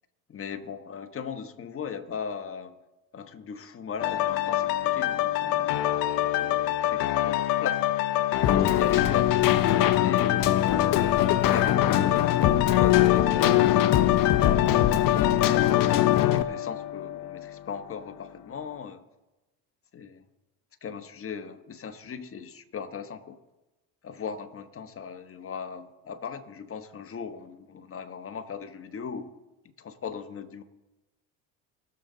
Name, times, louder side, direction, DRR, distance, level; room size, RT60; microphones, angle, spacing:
voice 1, 0.3-2.8 3.1-7.8 8.5-14.5 15.1-19.0 19.9-20.3 20.8-23.4 24.0-29.3 29.8-30.6, left 6 dB, 25° left, 8 dB, 1.2 m, -39 dB
sound 1, 4.0-17.7 18.2-18.3, left 13 dB, 80° left, 0.9 m, -26 dB
Keyboard (musical), 8.4-16.4, left 13 dB, 45° left, 0.8 m, -23 dB
20.0 x 6.9 x 3.9 m, 1.0 s
hypercardioid pair, 85°, 48 cm